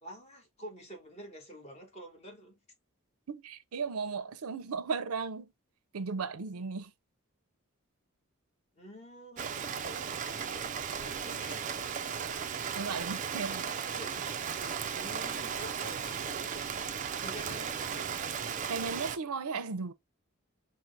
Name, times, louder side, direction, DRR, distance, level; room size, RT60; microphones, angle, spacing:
voice 1, 0.0-2.6 8.8-11.7 13.3-14.5 14.9-17.8, equal, 30° left, 1.1 m, -48 dB
voice 2, 3.3-5.5 5.9-6.9 12.5-13.6 18.7-19.9, right 5 dB, 85° right, 0.6 m, -36 dB
Rain, 9.4-19.2, right 7 dB, 35° right, 0.3 m, -36 dB
4.5 x 2.1 x 3.8 m
head